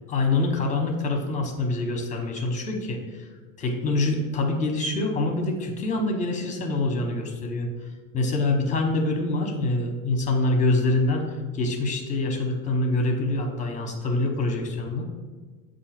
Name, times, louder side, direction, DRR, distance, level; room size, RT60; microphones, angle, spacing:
voice 1, 0.1-3.3 3.6-7.7 8.1-11.2 11.5-15.1, left 2 dB, 20° left, 4 dB, 0.9 m, -25 dB
7.6 x 2.6 x 5.8 m, 1.4 s
supercardioid pair, 145°, 40 cm